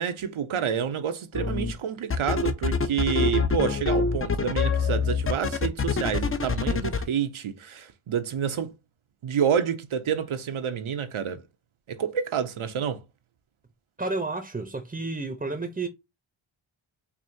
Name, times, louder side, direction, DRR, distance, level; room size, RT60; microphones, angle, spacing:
voice 1, 0.0-8.7 9.2-11.4 11.9-13.0, right 7 dB, 75° right, 0.8 m, -28 dB
sound 1, 1.3-1.7 2.1-7.1, left 5 dB, 25° left, 0.5 m, -25 dB
voice 2, 14.0-15.9, right 3 dB, 15° right, 0.7 m, -31 dB
4.8 x 2.7 x 2.6 m
wide cardioid pair, 85°, 49 cm